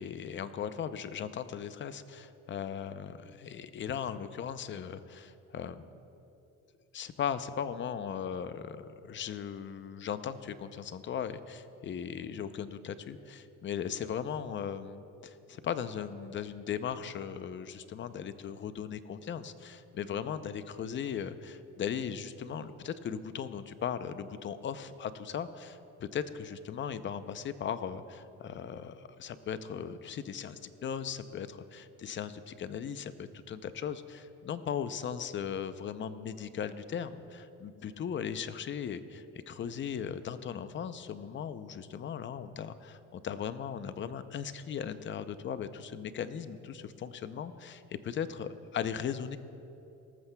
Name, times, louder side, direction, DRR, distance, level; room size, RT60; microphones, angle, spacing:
voice 1, 0.0-6.0 6.9-25.7 26.0-49.4, left 8 dB, 40° left, 12 dB, 0.6 m, -38 dB
18.5 x 14.0 x 2.3 m, 2.8 s
cardioid pair, 115°, 30 cm